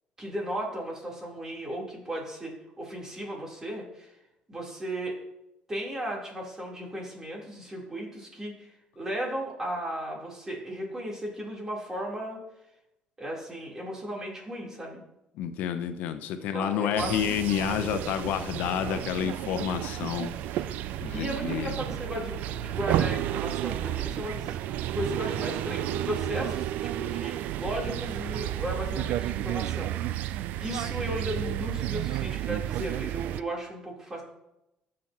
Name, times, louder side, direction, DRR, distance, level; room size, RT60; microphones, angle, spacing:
voice 1, 0.2-4.1 4.5-5.2 5.7-8.7 9.0-12.4 13.2-15.0 16.4-17.2 21.1-24.6 24.9-30.3 30.6-34.2, equal, 20° right, -3 dB, 3.7 m, -35 dB
voice 2, 15.4-20.3 21.0-21.7, left 9 dB, 75° left, 9 dB, 0.9 m, -29 dB
sound 1, 17.0-33.4, right 12 dB, 75° right, 0.4 m, -31 dB
14.5 x 6.3 x 3.0 m, 0.89 s
cardioid pair, 95°, 3 cm